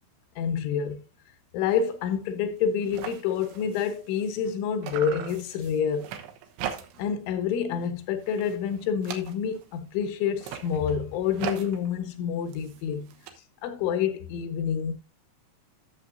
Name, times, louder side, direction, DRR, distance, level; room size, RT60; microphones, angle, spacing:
voice 1, 0.4-1.0 1.5-6.1 7.0-13.1 13.6-14.9, left 7 dB, 85° left, 3.5 m, -28 dB
sound 1, 1.7-1.9 2.3-2.4 2.6-4.6 4.8-7.2 7.5-7.9 8.2-9.7 10.3-13.3, right 9 dB, 75° right, 3.1 m, -40 dB
13.5 x 6.9 x 2.6 m
omnidirectional pair, 5.4 m